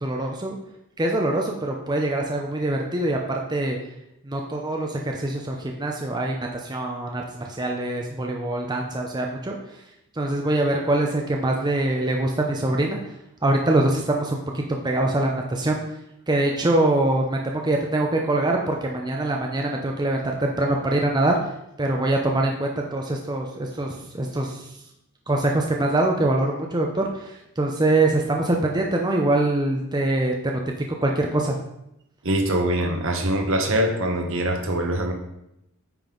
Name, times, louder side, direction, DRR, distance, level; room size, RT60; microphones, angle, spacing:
voice 1, 0.0-0.6 1.0-3.8 4.2-9.6 10.1-13.0 13.4-15.8 16.3-21.4 21.8-24.7 25.3-30.6 31.0-31.6, right 2 dB, 20° right, 1 dB, 0.6 m, -24 dB
voice 2, 32.2-35.1, right 1 dB, 60° right, 4 dB, 1.2 m, -23 dB
9.1 x 5.5 x 3.9 m, 0.83 s
head